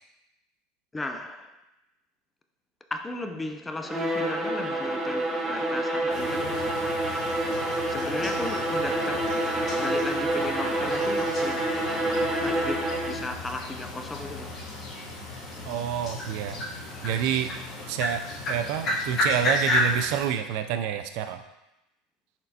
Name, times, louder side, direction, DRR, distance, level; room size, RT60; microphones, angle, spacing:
voice 1, 0.9-1.5 2.9-6.8 7.9-9.4 9.7-11.6 12.4-14.5, left 2 dB, 15° left, 0.4 m, -35 dB
Bowed string instrument, 3.8-13.3, right 1 dB, 10° right, 1.0 m, -27 dB
sound 1, 6.1-20.2, left 1 dB, 35° left, 1.1 m, -33 dB
voice 2, 15.6-16.6 17.0-17.5 17.9-21.4, right 9 dB, 65° right, 0.3 m, -28 dB
4.2 x 4.2 x 2.8 m
supercardioid pair, 120°, 0 cm